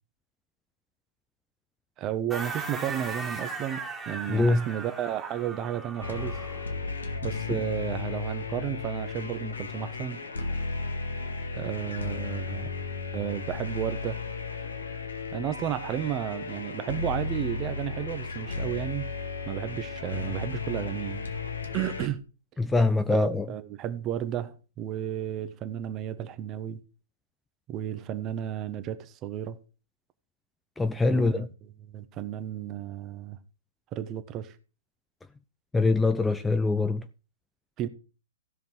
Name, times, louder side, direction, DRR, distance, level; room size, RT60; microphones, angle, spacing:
voice 1, 2.0-6.4 7.2-10.2 11.5-12.7 13.1-14.2 15.3-19.1 19.5-21.3 21.7-22.2 23.1-26.8 27.7-29.6 31.1-31.5 31.9-33.4 33.9-34.5 37.8-37.9, right 11 dB, 30° right, 1.2 m, -33 dB
sound 1, 2.3-6.7, right 4 dB, 10° right, 2.0 m, -37 dB
voice 2, 4.3-4.7 7.5-7.6 22.6-23.5 30.8-31.5 35.7-37.1, left 3 dB, 10° left, 0.5 m, -24 dB
sound 2, 6.0-22.1, left 4 dB, 85° left, 1.9 m, -34 dB
16.0 x 5.4 x 4.8 m
hypercardioid pair, 125°, 0 cm